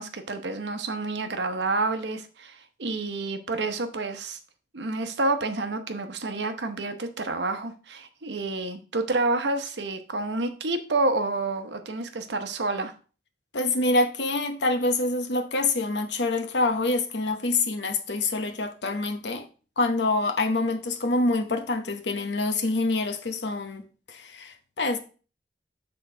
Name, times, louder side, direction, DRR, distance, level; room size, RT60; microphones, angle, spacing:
voice 1, 0.0-4.4 4.7-12.9, right 2 dB, 85° right, 0.9 m, -29 dB
voice 2, 13.5-19.5 19.8-23.8 24.1-25.0, left 2 dB, 85° left, 1.0 m, -26 dB
6.9 x 3.8 x 4.9 m
head